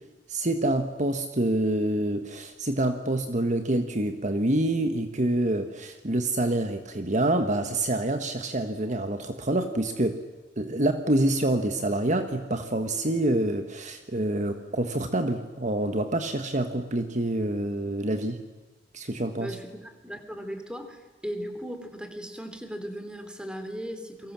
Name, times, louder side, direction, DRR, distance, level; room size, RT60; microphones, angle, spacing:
voice 1, 0.3-10.2 10.6-18.4 18.9-19.5, right 1 dB, 40° right, 7 dB, 1.4 m, -27 dB
voice 2, 19.4-24.3, equal, 5° right, 7 dB, 3.3 m, -37 dB
29.5 x 24.0 x 7.5 m, 1.2 s
head